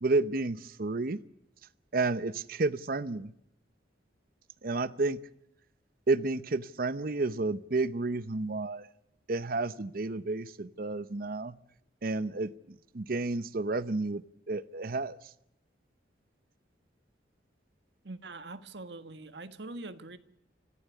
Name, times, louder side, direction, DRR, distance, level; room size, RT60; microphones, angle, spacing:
voice 1, 0.0-1.2 1.9-3.3 4.6-5.2 6.1-8.9 9.3-11.6 12.0-12.5 12.9-15.2, right 3 dB, 50° right, 0.7 m, -31 dB
voice 2, 18.0-20.2, right 2 dB, 70° right, 1.5 m, -43 dB
26.0 x 15.0 x 8.2 m
head